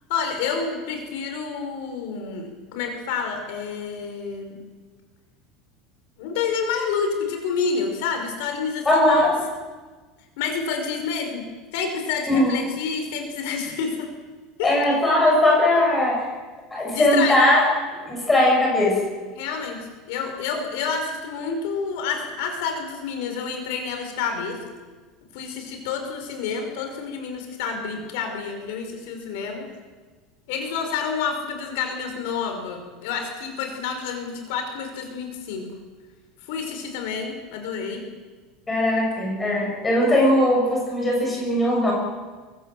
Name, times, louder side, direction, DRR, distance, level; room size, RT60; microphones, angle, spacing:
voice 1, 0.1-4.6 6.2-9.3 10.4-11.4 11.7-14.1 14.6-14.8 16.9-17.5 19.4-19.8 20.1-24.6 25.3-29.7 30.5-35.7 36.5-38.0, left 5 dB, 65° left, 4 dB, 5.2 m, -29 dB
voice 2, 8.9-9.3 12.3-12.5 14.6-16.2 16.7-17.6 18.1-18.9 38.7-41.9, left 1 dB, 10° left, -2 dB, 7.2 m, -19 dB
23.5 x 23.5 x 7.7 m, 1.4 s
cardioid pair, 175°, 0 cm